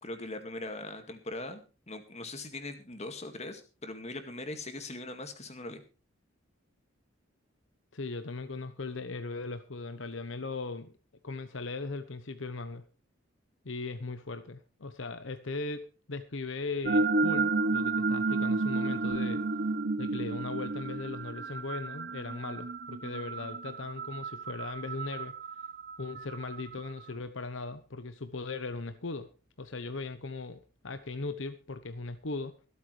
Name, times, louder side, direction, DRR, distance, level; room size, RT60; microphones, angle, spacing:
voice 1, 0.0-5.8, left 2 dB, 35° left, 7 dB, 2.0 m, -41 dB
voice 2, 7.9-10.9 11.2-12.8 13.6-15.8 16.1-19.4 20.0-25.3 26.0-29.3 29.6-32.5, left 3 dB, 70° left, 10 dB, 0.9 m, -38 dB
sound 1, 16.8-26.9, right 3 dB, 50° right, 0.9 m, -31 dB
24.5 x 8.5 x 3.3 m, 0.34 s
head